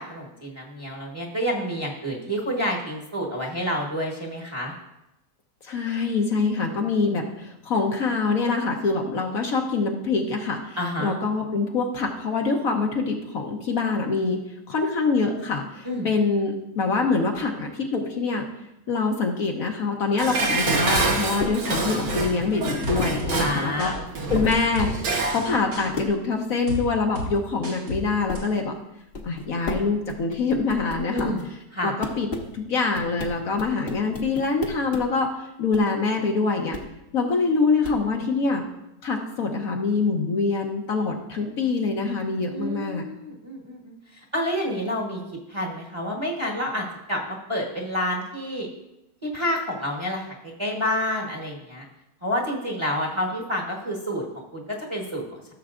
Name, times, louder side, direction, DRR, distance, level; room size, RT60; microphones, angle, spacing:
voice 1, 0.0-4.7 10.8-11.2 15.8-16.1 23.4-24.3 31.1-31.4 31.7-31.9 42.5-43.9 44.3-45.2 45.5-48.7 49.2-51.9 52.2-54.2 54.5-55.4, equal, 20° right, -1 dB, 1.1 m, -29 dB
voice 2, 5.6-14.4 14.7-18.5 18.9-23.9 24.3-28.7 29.2-31.3 31.8-32.3 32.5-36.8 37.1-38.6 39.0-43.0, left 4 dB, 60° left, 2 dB, 1.2 m, -25 dB
Dishes pots and pans, 20.2-25.5 25.8-25.9, right 3 dB, 90° right, 1.8 m, -27 dB
sound 1, 20.9-21.1 21.6-22.0 22.8-23.3 23.8-23.9 24.5-24.9 25.2-25.8 26.7-26.8 27.2-27.3 27.6-28.0 28.4-28.5, left 1 dB, 70° right, 3.5 m, -32 dB
sound 2, 21.4-21.6 22.5-23.1 23.6-23.7 24.1-24.6 25.1-25.6 25.9-26.1 26.5-26.6 27.9-28.0 28.3-28.5 29.1-29.8 30.1-31.4 32.0-32.5 32.9-35.0 35.7-35.8 36.7-36.9 37.8-38.0, left 3 dB, 40° left, 1.1 m, -33 dB
15.0 x 7.0 x 2.5 m, 0.89 s
omnidirectional pair, 1.8 m